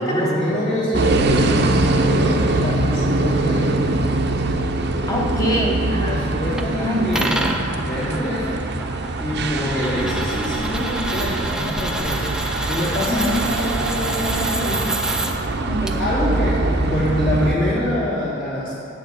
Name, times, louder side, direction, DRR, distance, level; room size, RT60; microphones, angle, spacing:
voice 1, 0.0-3.9 6.0-7.4 7.7-8.7 9.2-15.0 16.0-18.7, left 1 dB, 80° left, -12 dB, 2.2 m, -25 dB
sound 1, 0.9-17.6, right 2 dB, 55° right, 0.5 m, -23 dB
voice 2, 5.1-6.3 6.8-7.4 13.1-13.5 15.7-16.0, equal, 15° left, -1 dB, 0.8 m, -24 dB
sound 2, 6.6-6.7 7.1-15.3 15.9-16.0, right 1 dB, 5° right, 0.4 m, -28 dB
8.2 x 6.6 x 6.2 m, 2.9 s
head